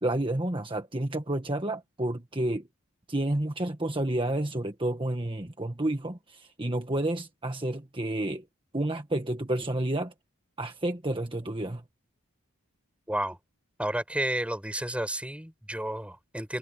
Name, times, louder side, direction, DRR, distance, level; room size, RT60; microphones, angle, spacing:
voice 1, 0.0-2.6 3.1-8.4 8.7-10.1 10.6-11.8, right 1 dB, 25° right, 1.5 m, -30 dB
voice 2, 13.1-13.4 13.8-16.6, right 1 dB, 5° right, 6.9 m, -31 dB
head